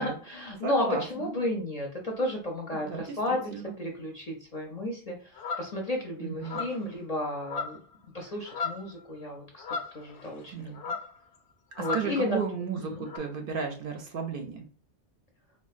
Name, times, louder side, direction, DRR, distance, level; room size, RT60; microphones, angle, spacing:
voice 1, 0.0-3.5 3.8-5.2 5.6-7.8 8.1-9.6 9.9-10.9 11.8-12.6 12.9-13.1, left 1 dB, 45° left, 1 dB, 0.5 m, -32 dB
voice 2, 0.6-1.3 2.7-3.8 6.2-6.7 10.5-10.8 11.8-14.7, right 5 dB, 60° right, 3 dB, 0.7 m, -34 dB
sound 1, 5.3-5.7 6.4-6.9 7.4-7.9 8.2-8.9 9.6-10.5 10.7-11.2 11.8-12.1 13.1-13.2, left 5 dB, 85° left, 0.9 m, -35 dB
3.6 x 2.2 x 2.4 m, 0.40 s
omnidirectional pair, 1.1 m